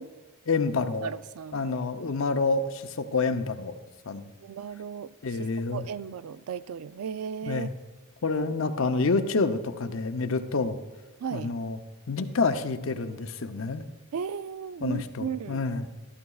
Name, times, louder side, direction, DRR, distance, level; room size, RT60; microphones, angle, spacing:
voice 1, 0.5-1.1 1.5-3.7 4.1-4.3 5.2-5.8 7.5-7.7 8.2-10.8 11.3-11.8 12.1-13.8 14.8-15.9, left 4 dB, 65° left, 9 dB, 0.6 m, -28 dB
voice 2, 1.0-1.6 4.4-7.7 11.2-11.5 14.1-15.7, right 7 dB, 85° right, 15 dB, 0.4 m, -36 dB
13.0 x 12.5 x 2.3 m, 1.2 s
head